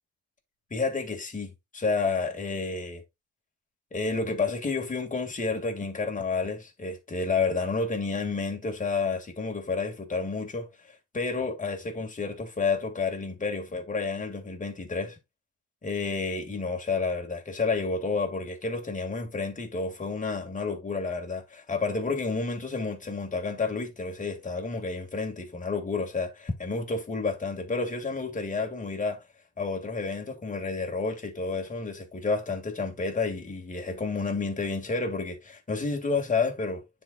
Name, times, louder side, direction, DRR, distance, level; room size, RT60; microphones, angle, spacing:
voice 1, 0.7-3.0 3.9-15.2 15.8-29.2 29.6-36.8, left 4 dB, 25° left, 2.0 m, -30 dB
9.8 x 4.2 x 2.4 m
cardioid pair, 90°, 30 cm